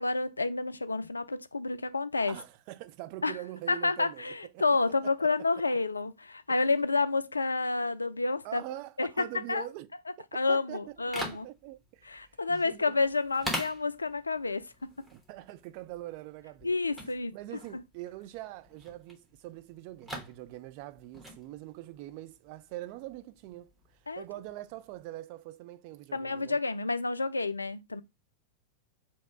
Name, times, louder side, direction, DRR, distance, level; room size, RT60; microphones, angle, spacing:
voice 1, 0.0-2.4 3.2-3.4 3.7-8.6 9.0-9.6 10.3-11.5 12.1-14.6 16.6-17.3 24.1-24.2 26.1-28.0, left 3 dB, 80° left, 0.3 m, -29 dB
voice 2, 2.3-4.7 5.0-5.6 6.5-6.6 8.4-9.9 10.5-13.0 15.1-16.7 17.3-23.7 24.2-26.6, right 16 dB, 45° right, 0.3 m, -43 dB
sound 1, 10.9-25.1, equal, 5° right, 1.4 m, -44 dB
3.1 x 2.8 x 4.5 m
figure-of-eight pair, 90°, 0 cm